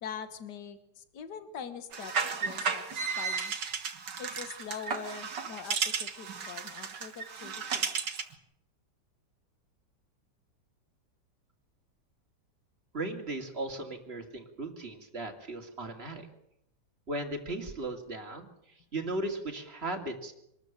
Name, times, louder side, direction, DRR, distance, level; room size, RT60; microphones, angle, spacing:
voice 1, 0.0-3.5 4.2-7.9, left 7 dB, 70° left, 11 dB, 2.0 m, -43 dB
sound 1, 1.9-8.3, right 6 dB, 70° right, 2.2 m, -34 dB
voice 2, 12.9-16.3 17.1-18.5 18.9-20.3, right 2 dB, 35° right, 4 dB, 2.8 m, -36 dB
25.0 x 13.5 x 9.1 m, 0.78 s
omnidirectional pair, 1.9 m